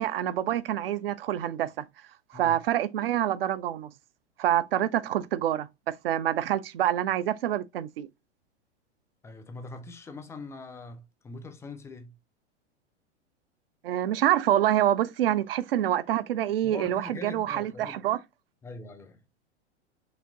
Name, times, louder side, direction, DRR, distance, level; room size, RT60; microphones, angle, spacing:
voice 1, 0.0-1.8 2.3-3.9 4.4-8.1 13.8-18.2, right 12 dB, 55° right, 0.5 m, -26 dB
voice 2, 9.2-12.1 16.6-18.0 18.6-19.2, left 3 dB, 10° left, 0.4 m, -43 dB
6.1 x 2.9 x 2.6 m
figure-of-eight pair, 95°, 35 cm